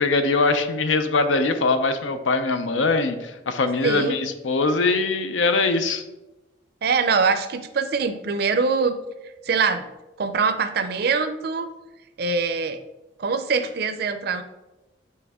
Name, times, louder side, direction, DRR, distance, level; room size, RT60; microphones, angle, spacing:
voice 1, 0.0-6.0, left 3 dB, 85° left, 9 dB, 0.6 m, -22 dB
voice 2, 3.8-4.2 6.8-9.0 9.4-9.9 10.2-11.7 12.2-12.8 13.2-14.4, right 5 dB, 55° right, 10 dB, 0.5 m, -23 dB
8.5 x 3.2 x 3.6 m, 1.0 s
head